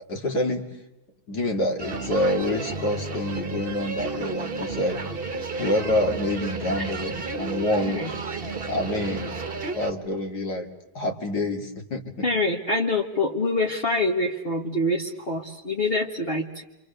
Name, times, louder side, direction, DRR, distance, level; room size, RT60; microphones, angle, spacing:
voice 1, 0.1-0.7 1.3-5.0 5.6-8.0 8.7-9.4 9.7-10.7 10.9-12.3, left 1 dB, 70° left, 2 dB, 2.9 m, -27 dB
sound 1, 1.8-9.9, right 3 dB, 35° right, 1.3 m, -32 dB
voice 2, 12.2-16.6, left 2 dB, 35° left, -1 dB, 1.7 m, -25 dB
28.0 x 26.5 x 6.7 m, 0.97 s
omnidirectional pair, 1.8 m